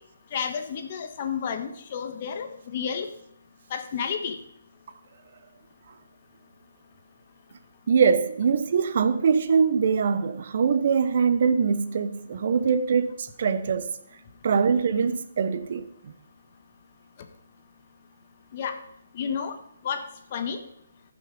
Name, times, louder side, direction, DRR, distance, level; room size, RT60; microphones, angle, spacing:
voice 1, 0.3-3.1 3.7-4.4 18.5-18.8 19.1-19.6 19.8-20.6, left 7 dB, 40° left, 1.4 m, -31 dB
voice 2, 7.9-13.9 14.4-16.1, right 6 dB, 50° right, 0.9 m, -23 dB
14.5 x 6.1 x 5.2 m
hypercardioid pair, 155°, 0 cm